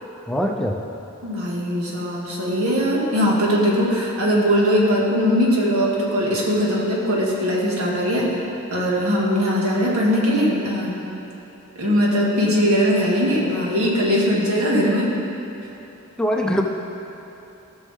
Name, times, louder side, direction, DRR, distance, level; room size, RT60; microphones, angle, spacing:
voice 1, 0.3-0.8 16.2-16.6, equal, 5° left, 0 dB, 0.5 m, -22 dB
voice 2, 1.2-8.3 8.7-11.0 11.8-15.1, equal, 85° right, -4 dB, 1.9 m, -20 dB
16.0 x 6.4 x 3.6 m, 3.0 s
head